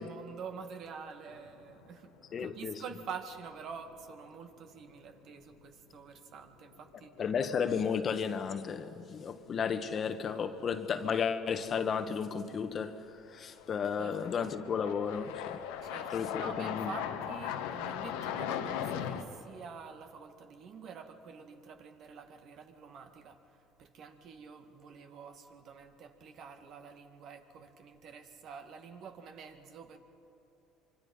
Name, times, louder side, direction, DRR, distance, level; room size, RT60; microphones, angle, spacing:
voice 1, 0.0-2.1 2.4-7.2 14.0-14.1 15.8-23.4 23.8-30.0, right 6 dB, 55° right, 1.9 m, -47 dB
sound 1, 1.3-1.9 2.3-2.4 5.3-5.4 6.7-6.9 7.3-7.4 12.7-12.8 13.6-19.2, left 9 dB, 90° left, 1.2 m, -38 dB
voice 2, 2.3-2.7 7.2-13.0 13.3-15.6 16.1-16.9, left 6 dB, 40° left, 1.2 m, -33 dB
25.5 x 25.0 x 5.5 m
supercardioid pair, 100°, 0 cm